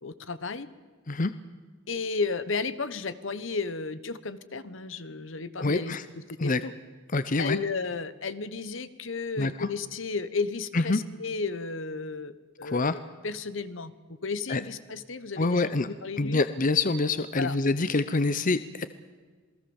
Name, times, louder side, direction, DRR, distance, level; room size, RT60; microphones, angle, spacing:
voice 1, 0.0-0.7 1.9-6.7 7.4-12.3 12.6-16.4 17.4-17.5, left 4 dB, 70° left, 14 dB, 1.2 m, -33 dB
voice 2, 5.6-6.0 6.4-6.6 7.1-7.6 9.4-9.7 10.7-11.0 12.6-13.0 14.5-14.6 15.4-15.9 16.2-18.9, left 3 dB, 40° left, 13 dB, 0.8 m, -26 dB
28.0 x 19.5 x 7.2 m, 1.5 s
head